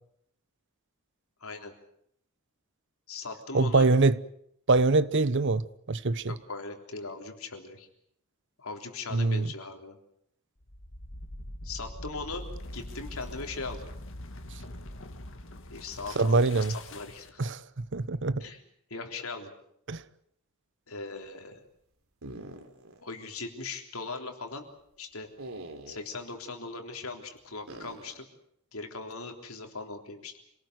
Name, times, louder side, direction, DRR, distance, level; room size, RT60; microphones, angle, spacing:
voice 1, 1.4-1.7 3.1-3.9 6.3-7.9 8.6-10.0 11.6-12.5 12.7-13.9 15.7-17.4 18.4-18.6 18.9-19.5 20.9-21.6 23.0-24.7 25.0-25.3 25.9-28.3 28.7-30.4, left 3 dB, 80° left, 3.6 m, -39 dB
voice 2, 3.5-4.2 4.7-6.3 9.1-9.5 16.2-16.7 17.4-18.4 19.9-20.0, right 3 dB, 55° right, 0.9 m, -24 dB
sound 1, 10.6-17.5, left 1 dB, 65° left, 2.1 m, -43 dB
sound 2, 22.2-23.0 23.4-23.5 25.4-26.2 27.7-28.2, right 2 dB, 85° right, 3.2 m, -44 dB
26.5 x 19.0 x 8.1 m
head